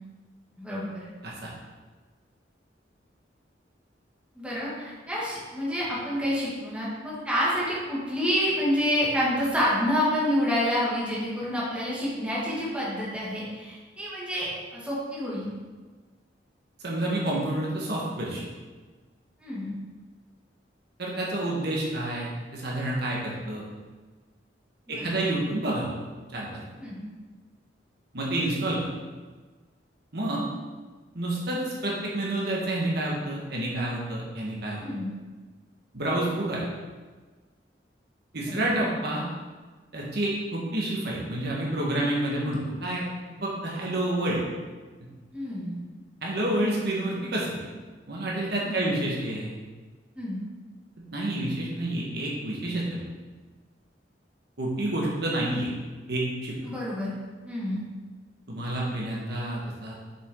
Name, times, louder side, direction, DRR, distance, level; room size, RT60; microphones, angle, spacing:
voice 1, 0.6-1.1 4.4-15.5 19.4-19.7 24.9-25.2 26.8-27.1 34.8-35.1 38.5-38.7 45.3-45.7 48.6-49.0 50.2-50.4 56.6-57.1 57.5-57.8, equal, 5° right, -8 dB, 2.2 m, -28 dB
voice 2, 16.8-18.4 21.0-23.7 24.9-26.0 26.3-26.5 28.1-28.9 30.1-30.5 31.1-34.8 35.9-36.7 38.3-39.2 39.9-43.0 43.4-44.4 46.2-47.6 48.1-49.6 51.1-53.0 54.6-55.7 56.1-56.6 58.5-59.9, right 1 dB, 65° right, -4 dB, 1.5 m, -29 dB
7.1 x 6.0 x 3.8 m, 1.4 s
head